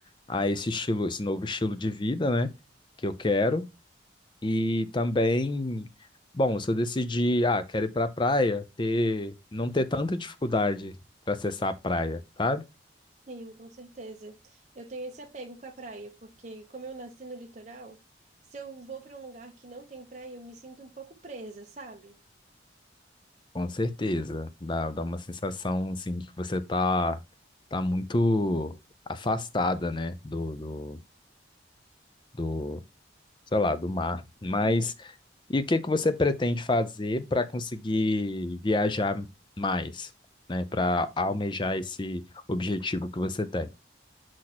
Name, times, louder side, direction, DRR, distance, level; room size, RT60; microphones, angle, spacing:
voice 1, 0.3-2.5 3.0-3.6 4.4-5.9 6.3-11.0 11.3-12.6 23.5-27.2 27.7-28.8 29.1-31.0 32.4-32.8 33.5-35.1 35.5-39.3 39.6-40.1 40.5-42.2 42.5-43.7, left 2 dB, 25° left, 0.5 m, -28 dB
voice 2, 13.3-18.0 18.5-22.2 34.5-34.9, right 3 dB, 40° right, 1.0 m, -43 dB
6.3 x 4.1 x 4.2 m
head